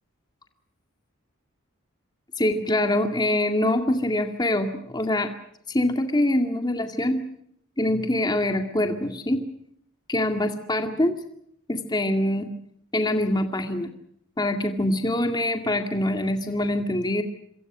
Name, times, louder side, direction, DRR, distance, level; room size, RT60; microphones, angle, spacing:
voice 1, 2.4-5.3 5.7-7.2 7.8-9.4 10.1-11.2 11.7-12.5 12.9-13.9 14.4-17.2, left 1 dB, 20° left, 5 dB, 2.1 m, -24 dB
27.0 x 24.0 x 6.2 m, 0.71 s
head